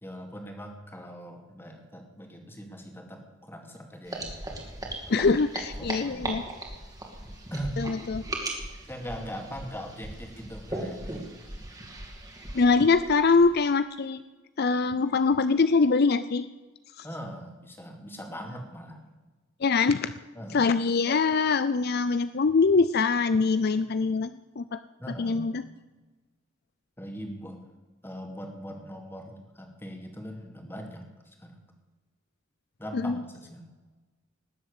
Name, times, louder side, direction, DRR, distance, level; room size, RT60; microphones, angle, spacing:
voice 1, 0.0-4.3 5.1-5.3 5.8-6.4 7.5-7.8 8.9-11.2 17.0-19.1 20.3-20.7 25.0-25.5 27.0-27.6 28.0-31.0 31.4-31.7 32.8-33.7, equal, 10° left, 3 dB, 2.4 m, -40 dB
sound 1, 4.1-13.6, right 2 dB, 20° right, 2.6 m, -38 dB
voice 2, 5.1-6.4 7.8-8.2 12.5-14.2 14.6-16.5 17.0-17.1 19.6-20.1 20.5-24.3 24.6-24.8 25.2-25.6 32.9-33.2, left 4 dB, 55° left, 13 dB, 0.5 m, -23 dB
19.5 x 7.7 x 8.2 m, 1.2 s
head